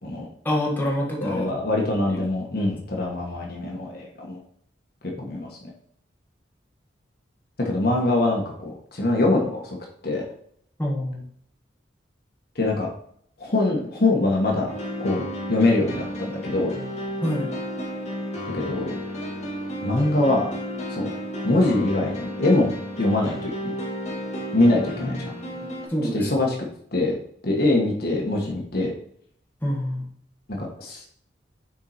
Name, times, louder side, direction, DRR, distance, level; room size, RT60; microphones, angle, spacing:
voice 1, 0.4-1.5 2.1-2.2 10.8-11.3 17.2-17.6 25.0-25.3 25.6-26.3 29.6-30.1, equal, 10° left, -3 dB, 1.5 m, -27 dB
voice 2, 1.2-4.4 5.0-5.6 7.6-9.8 10.0-10.2 12.5-12.9 13.4-14.7 15.0-16.7 18.5-19.0 19.8-20.5 20.9-21.1 21.4-22.7 23.0-23.5 24.5-25.1 26.1-26.5 26.9-27.1 27.4-28.9 30.6-31.1, left 2 dB, 55° left, -1 dB, 1.4 m, -23 dB
sound 1, 14.7-25.9, equal, 40° left, 1.8 m, -32 dB
7.0 x 4.5 x 4.2 m, 0.64 s
head